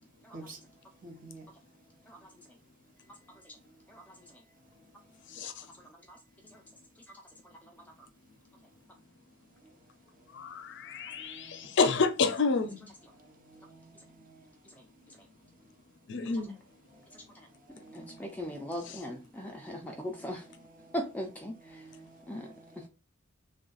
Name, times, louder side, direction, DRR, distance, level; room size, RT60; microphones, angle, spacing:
voice 1, 1.0-1.5 11.2-11.5 13.5-13.8 17.8-18.2 18.6-18.7 19.7-19.9 20.8-20.9 21.7-22.9, right 2 dB, 40° right, 0.9 m, -50 dB
voice 2, 10.3-12.9 16.1-16.5 18.8-19.0, left 4 dB, 60° left, 0.5 m, -29 dB
voice 3, 17.9-20.4 20.9-21.8 22.3-22.5, equal, 5° left, 0.4 m, -38 dB
3.2 x 2.4 x 3.8 m
head